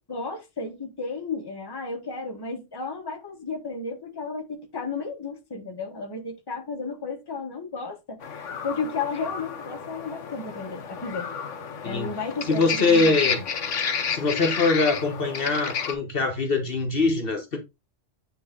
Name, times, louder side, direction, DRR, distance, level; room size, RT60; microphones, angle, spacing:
voice 1, 0.1-8.2 8.6-11.3 11.8-13.2, left 4 dB, 20° left, 1.2 m, -33 dB
sound 1, 8.2-15.9, left 6 dB, 85° left, 1.3 m, -31 dB
voice 2, 12.5-13.4 14.1-17.6, left 3 dB, 50° left, 1.2 m, -23 dB
8.9 x 3.3 x 3.7 m
omnidirectional pair, 1.2 m